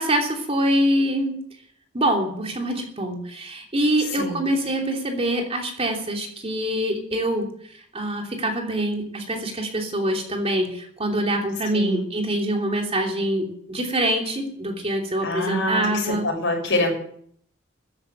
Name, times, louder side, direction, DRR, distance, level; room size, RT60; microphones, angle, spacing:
voice 1, 0.0-1.4 1.9-7.5 7.9-16.3, right 1 dB, 30° right, 2 dB, 3.0 m, -25 dB
voice 2, 4.2-4.5 11.7-12.0 15.2-16.9, left 1 dB, 65° left, 1 dB, 6.5 m, -25 dB
14.5 x 10.5 x 8.0 m, 0.62 s
head